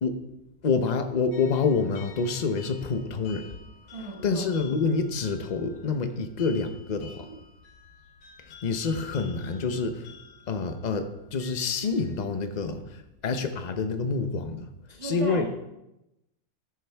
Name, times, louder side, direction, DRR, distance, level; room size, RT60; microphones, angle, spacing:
voice 1, 0.6-3.5 4.2-7.3 8.5-10.1 10.5-14.6 15.0-15.5, left 4 dB, 40° left, 7 dB, 0.6 m, -27 dB
sound 1, 1.3-12.2, left 5 dB, 75° left, 2.2 m, -52 dB
voice 2, 3.9-4.5 7.2-7.4 14.9-15.5, right 1 dB, 20° right, -3 dB, 1.5 m, -36 dB
14.0 x 10.0 x 3.5 m, 0.90 s
omnidirectional pair, 2.0 m